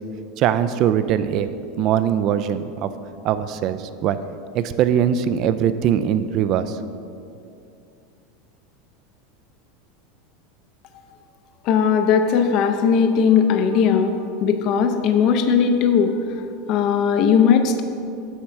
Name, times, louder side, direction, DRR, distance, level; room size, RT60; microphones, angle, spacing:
voice 1, 0.4-1.5 1.8-2.9 3.2-4.2 4.5-6.8, right 9 dB, 45° right, 12 dB, 0.4 m, -21 dB
voice 2, 11.6-17.8, left 6 dB, 45° left, 7 dB, 0.5 m, -18 dB
7.2 x 6.5 x 4.6 m, 2.5 s
supercardioid pair, 140°, 0 cm